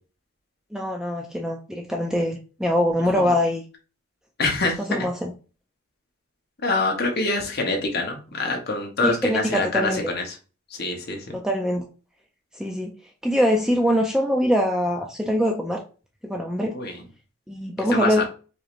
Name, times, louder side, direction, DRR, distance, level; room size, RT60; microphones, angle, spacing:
voice 1, 0.7-3.6 4.8-5.3 9.0-10.0 11.3-11.9 12.5-12.9 13.2-15.8 16.2-16.8 17.5-18.2, equal, 5° right, 1 dB, 0.3 m, -23 dB
voice 2, 4.4-5.1 6.6-10.2 10.8-11.2 16.7-17.0 17.9-18.2, left 2 dB, 50° left, 2 dB, 1.0 m, -25 dB
4.9 x 3.1 x 2.5 m, 0.35 s
head